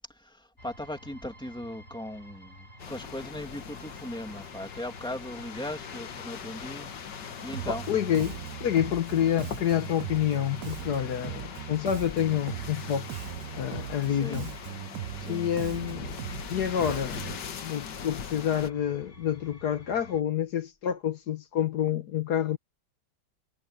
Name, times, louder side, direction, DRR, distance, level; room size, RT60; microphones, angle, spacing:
voice 1, 0.1-7.8 14.1-14.5 15.2-15.8, left 1 dB, 5° left, 2.8 m, -39 dB
sound 1, 0.6-20.2, equal, 40° left, 5.2 m, -51 dB
sound 2, 2.8-18.7, left 8 dB, 90° left, 1.9 m, -41 dB
Bass guitar, 7.5-17.4, right 15 dB, 65° right, 0.9 m, -39 dB
voice 2, 7.7-13.3 13.5-14.5 15.2-16.1 16.5-17.3 17.6-22.6, left 10 dB, 70° left, 1.6 m, -28 dB
omnidirectional pair, 1.8 m